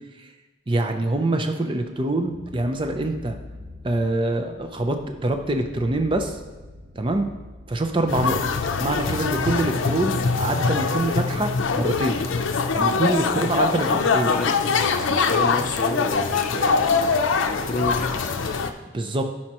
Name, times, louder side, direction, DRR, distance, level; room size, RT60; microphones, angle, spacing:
voice 1, 0.7-3.4 3.8-6.4 7.0-7.3 7.7-8.4 8.8-12.2 12.7-14.3 18.9-19.3, right 2 dB, 25° right, 6 dB, 0.5 m, -25 dB
sound 1, 2.2-9.7, left 2 dB, 85° right, 1.6 m, -43 dB
sound 2, 8.1-18.7, left 4 dB, 85° left, 0.5 m, -23 dB
voice 2, 13.2-14.0 14.3-14.6 15.1-17.0 17.4-18.2 18.5-18.7, left 2 dB, 40° left, 4 dB, 0.6 m, -30 dB
12.0 x 4.3 x 3.0 m, 1.2 s
head